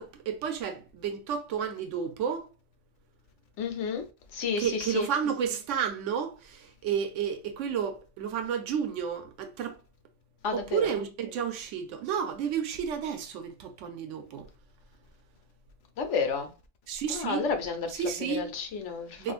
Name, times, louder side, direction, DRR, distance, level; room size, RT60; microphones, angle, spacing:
voice 1, 0.0-2.5 4.6-9.8 10.5-14.5 16.9-17.5 17.9-18.5 19.2-19.3, right 7 dB, 85° right, 0.9 m, -31 dB
voice 2, 3.6-4.0 4.3-5.1 10.4-10.9 16.0-16.5 17.1-18.0 18.3-19.3, left 5 dB, 75° left, 1.0 m, -31 dB
3.7 x 2.5 x 2.4 m
omnidirectional pair, 1.2 m